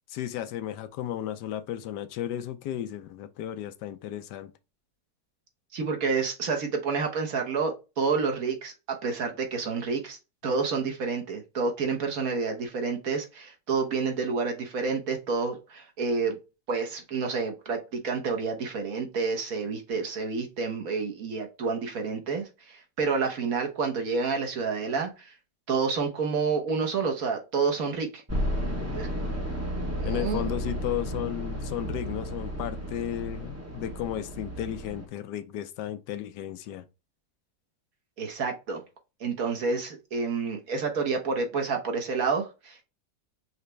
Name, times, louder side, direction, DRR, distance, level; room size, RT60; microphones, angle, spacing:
voice 1, 0.1-4.5 5.8-5.9 30.0-36.8, left 11 dB, 85° left, 1.3 m, -34 dB
voice 2, 5.7-16.4 16.7-25.3 25.7-28.2 28.9-29.1 30.0-30.5 38.2-38.8 39.2-42.8, right 5 dB, 60° right, 1.5 m, -29 dB
sound 1, 28.3-35.1, equal, 15° right, 0.6 m, -33 dB
4.9 x 3.2 x 3.2 m
omnidirectional pair, 1.8 m